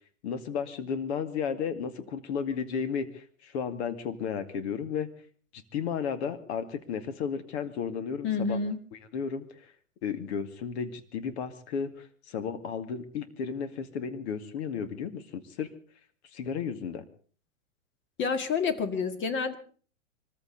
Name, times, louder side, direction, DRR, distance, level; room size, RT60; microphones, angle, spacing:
voice 1, 0.2-5.1 5.5-8.6 8.9-9.6 10.0-15.7 16.3-17.0, left 6 dB, 55° left, 9 dB, 2.3 m, -33 dB
voice 2, 8.2-8.8 18.2-19.6, left 5 dB, 30° left, 9 dB, 1.9 m, -28 dB
24.0 x 14.5 x 4.1 m, 0.43 s
figure-of-eight pair, 105°, 39 cm